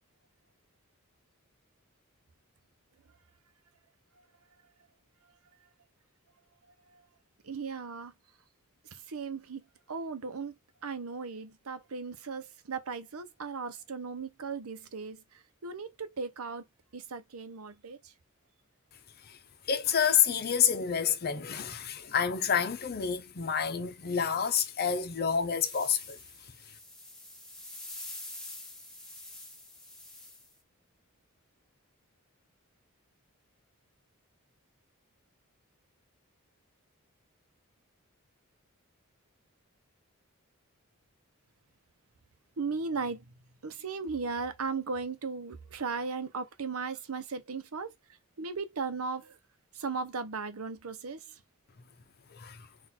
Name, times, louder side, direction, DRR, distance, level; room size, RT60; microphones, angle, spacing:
voice 1, 7.4-8.1 8.8-16.7 16.9-18.1 42.6-48.0 48.4-49.4 49.7-51.4, right 4 dB, 85° right, 0.8 m, -37 dB
voice 2, 19.7-26.2 52.3-52.6, left 7 dB, 45° left, 0.7 m, -28 dB
sound 1, 25.6-30.5, left 1 dB, 5° left, 1.1 m, -46 dB
3.9 x 2.6 x 4.3 m
head